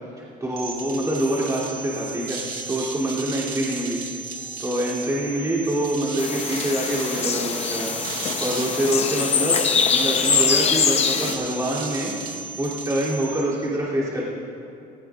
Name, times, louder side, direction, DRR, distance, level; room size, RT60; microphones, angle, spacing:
voice 1, 0.4-4.0 4.6-8.0 8.4-9.6 9.9-12.1 12.6-14.2, right 1 dB, 20° right, -7 dB, 3.0 m, -25 dB
sound 1, 0.6-13.4, right 4 dB, 55° right, 1.7 m, -34 dB
sound 2, 6.2-11.3, left 6 dB, 40° left, 0.8 m, -23 dB
17.5 x 15.0 x 2.5 m, 2.6 s
cardioid pair, 110°, 17 cm